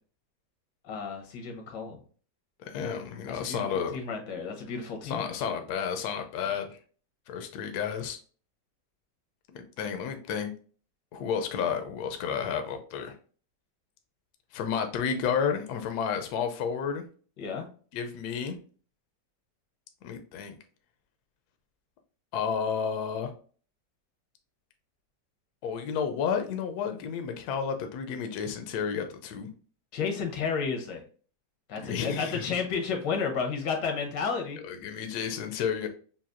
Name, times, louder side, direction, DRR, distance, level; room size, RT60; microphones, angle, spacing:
voice 1, 0.8-2.0 3.3-5.6 17.4-17.7 29.9-31.0 31.7-34.6, left 5 dB, 90° left, 3 dB, 1.6 m, -32 dB
voice 2, 2.7-4.0 5.0-6.8 7.3-8.2 9.5-10.5 11.1-13.2 14.5-17.0 17.9-18.6 20.0-20.6 22.3-23.3 25.6-29.5 31.8-32.5 34.6-35.9, left 7 dB, 75° left, 6 dB, 1.1 m, -31 dB
5.6 x 2.3 x 2.5 m, 0.41 s
omnidirectional pair, 1.8 m